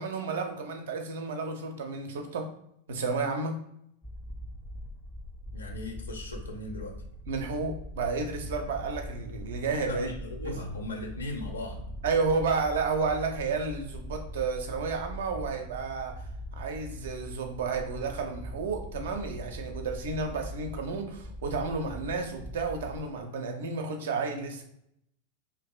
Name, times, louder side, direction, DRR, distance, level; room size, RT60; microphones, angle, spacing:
voice 1, 0.0-2.5 2.9-3.6 7.3-10.1 12.0-16.3 16.5-24.6, right 4 dB, 60° right, 5 dB, 0.4 m, -31 dB
sound 1, 4.0-23.0, equal, 10° left, 0.4 m, -42 dB
voice 2, 5.5-7.0 9.9-11.8, left 2 dB, 70° left, 3 dB, 0.5 m, -38 dB
2.4 x 2.4 x 2.3 m, 0.73 s
figure-of-eight pair, 90°, 0 cm